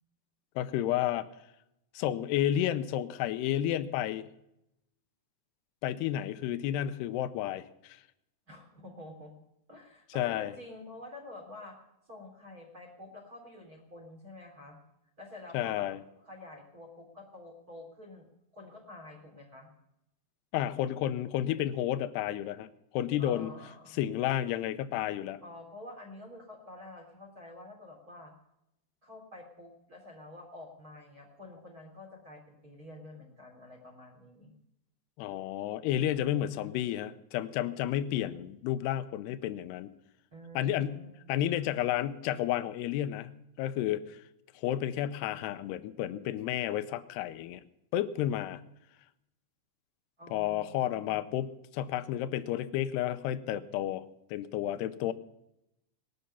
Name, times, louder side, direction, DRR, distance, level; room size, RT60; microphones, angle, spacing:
voice 1, 0.6-1.3 1.9-4.3 5.8-8.0 10.2-10.5 15.5-16.0 20.5-22.7 22.9-23.5 23.9-25.4 35.2-39.9 40.6-41.0 41.3-43.3 43.6-44.2 44.6-47.6 47.9-48.6 50.3-51.5 51.7-54.0 54.3-55.1, left 12 dB, 80° left, 13 dB, 2.7 m, -31 dB
voice 2, 8.5-9.3 9.7-11.8 12.1-14.8 15.2-15.9 16.2-18.3 18.5-19.7 23.2-24.0 25.4-28.3 29.0-34.5 35.9-36.8 40.3-41.1 50.2-51.2, left 2 dB, 20° right, 3 dB, 3.4 m, -48 dB
19.5 x 12.0 x 5.6 m, 0.84 s
omnidirectional pair, 4.9 m